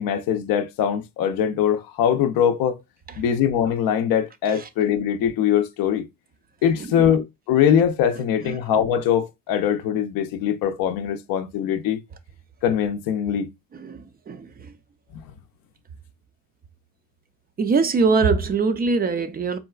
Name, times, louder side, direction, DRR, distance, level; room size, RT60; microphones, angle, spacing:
voice 1, 0.0-2.8 3.2-6.1 6.6-12.0 12.6-13.5 15.1-15.2, left 9 dB, 65° left, 0.5 m, -22 dB
voice 2, 13.7-14.7 17.6-19.6, right 4 dB, 25° right, 0.4 m, -22 dB
3.8 x 2.3 x 2.3 m
cardioid pair, 100°, 37 cm